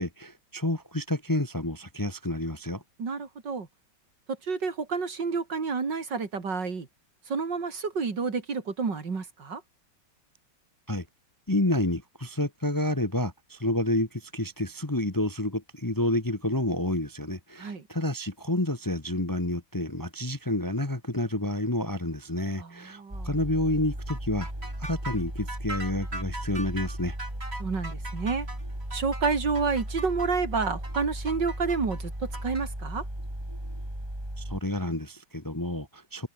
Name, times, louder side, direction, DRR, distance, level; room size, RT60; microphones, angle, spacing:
voice 1, 0.0-2.8 10.9-11.0 11.5-24.5 24.8-27.2 34.4-36.3, left 1 dB, 10° left, 1.2 m, -29 dB
voice 2, 3.0-3.7 4.5-6.9 7.3-9.6 17.6-17.8 22.6-23.3 27.6-28.5 28.9-33.0, right 4 dB, 70° right, 3.6 m, -29 dB
sound 1, 23.1-34.6, right 1 dB, 15° right, 6.4 m, -36 dB
sound 2, 24.1-32.6, right 2 dB, 35° right, 4.9 m, -40 dB
omnidirectional pair, 2.0 m